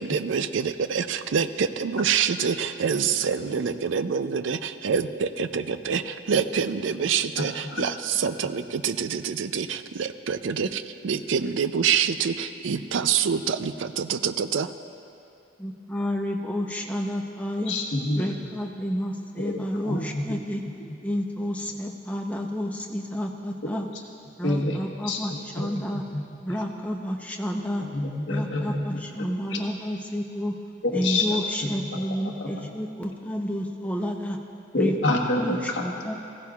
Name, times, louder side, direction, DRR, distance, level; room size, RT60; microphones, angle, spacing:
voice 1, 0.0-14.7, right 7 dB, 75° right, 12 dB, 0.4 m, -26 dB
voice 2, 7.4-7.8 17.7-18.3 19.4-20.4 23.6-23.8 24.4-26.2 26.5-26.6 27.9-29.0 29.5-29.6 30.8-31.4 31.6-32.0 32.2-32.7 34.7-35.9, left 2 dB, 65° left, -1 dB, 1.2 m, -28 dB
voice 3, 15.6-17.7 18.1-20.6 21.0-23.9 24.4-26.0 26.4-27.8 28.3-30.5 30.9-34.4 34.7-36.1, equal, 5° left, 1 dB, 0.7 m, -30 dB
16.0 x 15.0 x 2.4 m, 2.7 s
head